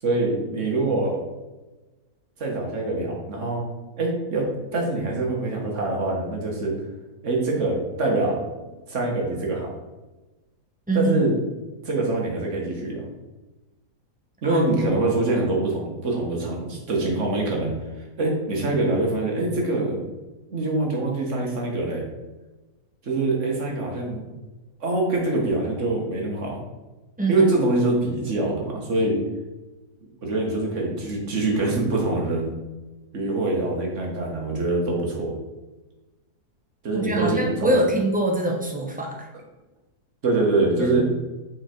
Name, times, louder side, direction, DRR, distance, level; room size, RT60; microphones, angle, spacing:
voice 1, 0.0-1.2 2.4-3.6 4.0-4.5 4.7-6.7 7.2-8.4 8.9-9.7 10.9-11.3 11.8-13.0 14.4-17.7 18.2-20.1 20.5-22.0 23.0-24.3 24.8-26.6 27.3-29.2 30.2-32.5 33.1-35.3 36.8-37.8 40.2-41.1, right 2 dB, 50° right, -1 dB, 1.7 m, -24 dB
voice 2, 10.9-11.3 14.4-14.8 27.2-27.5 36.9-39.2 40.8-41.0, right 1 dB, 10° right, -1 dB, 0.7 m, -24 dB
5.7 x 4.5 x 4.4 m, 1.1 s
omnidirectional pair, 1.7 m